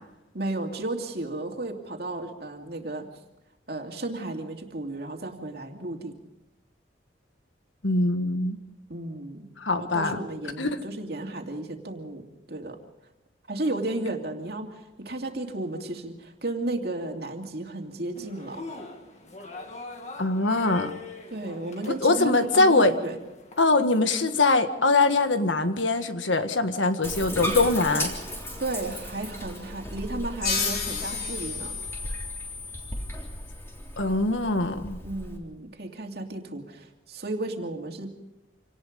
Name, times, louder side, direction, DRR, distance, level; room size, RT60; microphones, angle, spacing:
voice 1, 0.3-3.1 3.7-6.1 8.9-9.5 9.8-12.8 13.5-18.6 21.3-23.2 28.6-31.8 35.0-38.2, right 2 dB, 55° right, 2 dB, 2.7 m, -34 dB
voice 2, 7.8-8.6 9.6-10.2 10.6-10.8 20.2-20.9 22.0-22.9 23.6-28.1 34.0-35.0, left 3 dB, 80° left, 8 dB, 1.7 m, -22 dB
sound 1, 18.2-23.8, left 3 dB, 35° left, 2.1 m, -43 dB
Bathtub (filling or washing), 27.0-35.4, equal, 15° left, 3.5 m, -36 dB
sound 2, 30.4-33.7, left 5 dB, 50° left, 4.4 m, -32 dB
27.0 x 19.0 x 5.3 m, 0.97 s
head